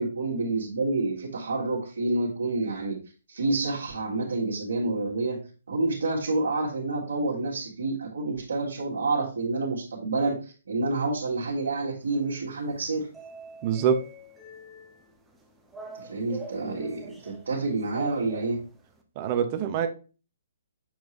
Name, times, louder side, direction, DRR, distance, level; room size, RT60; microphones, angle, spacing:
voice 1, 0.0-3.0 3.3-5.4 5.7-13.1 16.0-18.6, right 2 dB, 70° right, -4 dB, 2.0 m, -28 dB
sound 1, 12.0-19.0, right 2 dB, 5° right, 1.0 m, -46 dB
voice 2, 13.6-14.0 19.2-19.9, right 8 dB, 35° right, 7 dB, 0.9 m, -24 dB
7.4 x 4.5 x 3.1 m, 0.35 s
figure-of-eight pair, 135°, 0 cm